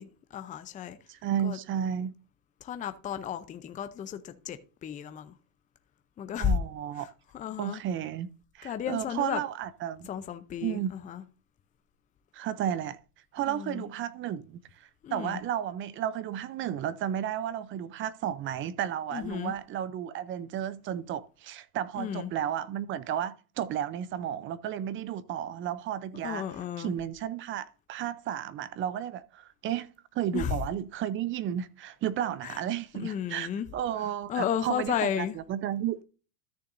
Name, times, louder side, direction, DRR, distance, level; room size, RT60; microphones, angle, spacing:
voice 1, 0.0-1.0 1.4-1.6 2.6-5.3 6.2-6.6 6.9-7.8 8.6-9.4 10.1-11.2 13.4-13.9 15.0-15.4 19.1-19.6 22.0-22.3 26.2-26.9 30.3-30.6 32.4-32.6 32.9-33.7 34.3-35.4, left 8 dB, 15° left, 0.6 m, -33 dB
voice 2, 1.1-2.1 6.4-7.1 7.6-8.3 8.5-10.1 10.6-10.9 12.3-13.0 13.3-26.5 26.8-29.9 30.1-36.0, right 10 dB, 25° right, 0.6 m, -33 dB
13.5 x 6.7 x 2.6 m
supercardioid pair, 130°, 46 cm